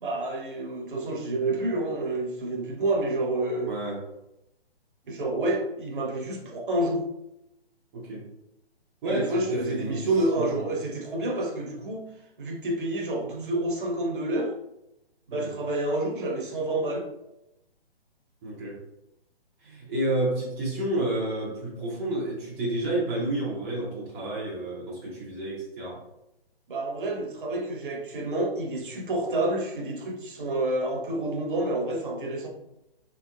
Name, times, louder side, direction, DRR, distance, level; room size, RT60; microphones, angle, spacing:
voice 1, 0.0-3.7 5.1-7.0 9.0-12.0 12.4-14.5 15.3-17.1 26.7-32.5, right 2 dB, 55° right, 1 dB, 0.8 m, -28 dB
voice 2, 3.7-4.0 7.9-8.2 9.0-10.0 10.3-10.7 15.3-15.5 18.4-18.8 19.6-26.0, right 1 dB, 15° right, -6 dB, 0.5 m, -30 dB
3.4 x 3.0 x 2.3 m, 0.87 s
figure-of-eight pair, 135°, 31 cm